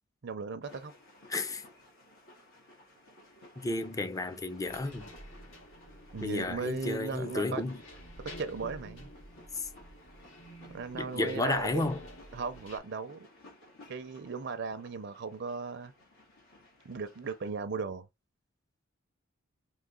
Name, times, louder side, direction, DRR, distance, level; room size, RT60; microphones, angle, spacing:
voice 1, 0.2-0.9 6.1-7.6 8.4-9.1 10.7-11.9 12.3-13.3 13.9-15.9 16.8-18.1, right 5 dB, 55° right, 0.5 m, -37 dB
sound 1, 0.6-17.5, left 1 dB, 90° left, 2.1 m, -58 dB
voice 2, 1.3-1.6 3.6-5.1 6.2-7.8 9.5-9.7 10.9-12.0, left 2 dB, 15° left, 0.5 m, -32 dB
sound 2, 4.7-12.8, equal, 70° left, 1.8 m, -50 dB
3.8 x 2.9 x 3.7 m
head